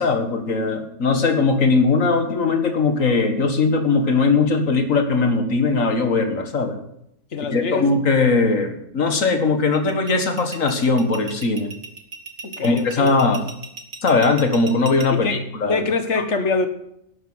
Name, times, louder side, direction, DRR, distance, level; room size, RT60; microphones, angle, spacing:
voice 1, 0.0-6.8 7.5-11.7 12.6-13.4 14.0-15.8, left 3 dB, 90° left, 6 dB, 2.1 m, -19 dB
voice 2, 7.3-7.9 12.4-13.1 15.1-15.4 15.7-16.7, left 4 dB, 60° left, 8 dB, 1.7 m, -24 dB
sound 1, 9.7-15.1, right 4 dB, 85° right, 2.1 m, -36 dB
12.0 x 9.3 x 7.8 m, 0.76 s
omnidirectional pair, 1.3 m